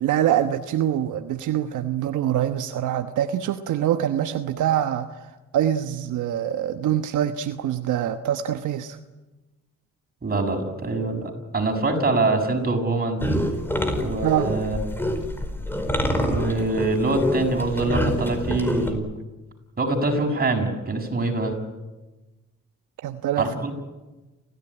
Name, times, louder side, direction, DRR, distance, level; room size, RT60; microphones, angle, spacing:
voice 1, 0.0-9.0 14.2-14.5 23.0-23.5, right 11 dB, 80° right, 8 dB, 1.2 m, -24 dB
voice 2, 10.2-13.3 14.0-14.8 16.0-19.1 19.8-21.6 23.4-23.7, right 2 dB, 30° right, 3 dB, 6.9 m, -24 dB
sound 1, 13.2-18.9, equal, 5° left, 4.8 m, -26 dB
29.5 x 15.5 x 10.0 m, 1.1 s
cardioid pair, 90°, 30 cm